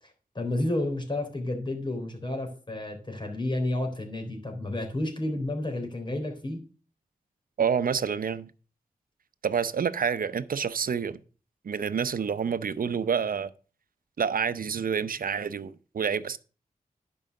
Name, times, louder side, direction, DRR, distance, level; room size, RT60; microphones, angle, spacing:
voice 1, 0.4-6.6, left 1 dB, 30° left, 3.7 m, -31 dB
voice 2, 7.6-8.5 9.4-11.2 11.6-13.5 14.2-16.4, right 7 dB, 70° right, 0.7 m, -28 dB
11.0 x 5.6 x 6.5 m
cardioid pair, 65°, 15 cm